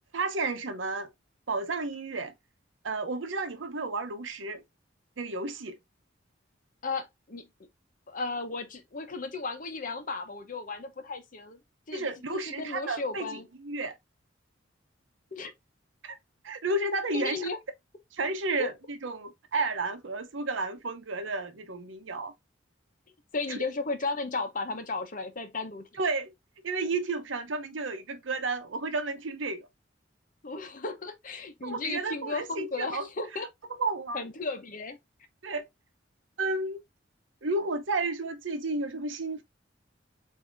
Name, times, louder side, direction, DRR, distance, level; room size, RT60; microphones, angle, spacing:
voice 1, 0.1-1.1 1.5-2.3 2.8-4.6 5.2-5.8 11.9-13.2 13.6-13.9 16.0-16.2 16.4-17.5 18.1-22.3 23.5-23.6 26.0-26.3 26.6-29.7 31.6-33.1 33.8-34.3 35.4-35.6 36.4-36.8 37.4-39.4, right 3 dB, 90° right, 0.8 m, -32 dB
voice 2, 6.8-7.5 8.1-11.6 11.9-13.5 15.3-15.5 17.1-17.6 18.6-18.7 23.3-25.9 30.4-33.5 34.1-35.0, left 3 dB, 45° left, 0.8 m, -35 dB
7.0 x 2.7 x 2.6 m
head